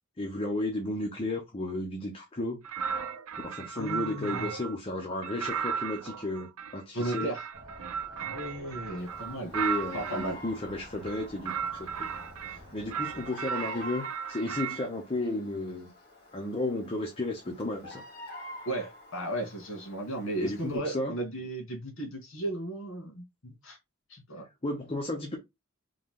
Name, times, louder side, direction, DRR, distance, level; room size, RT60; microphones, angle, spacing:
voice 1, 0.2-2.6 3.4-6.5 6.7-7.3 9.5-12.2 12.4-15.9 16.3-18.0 20.4-21.1 24.6-25.4, left 2 dB, 25° left, 0.7 m, -33 dB
sound 1, 2.6-4.8 5.2-10.3 11.0-12.6 12.9-14.9, right 7 dB, 90° right, 0.5 m, -35 dB
voice 2, 3.7-4.5 6.9-7.4 8.2-9.5 9.9-10.4 18.7-23.8 24.1-24.5, right 1 dB, 60° left, 2.0 m, -35 dB
sound 2, 7.5-13.3, equal, 15° right, 1.3 m, -50 dB
Bird vocalization bird call bird song, 9.0-20.8, equal, 45° left, 2.3 m, -48 dB
3.9 x 2.8 x 3.7 m
head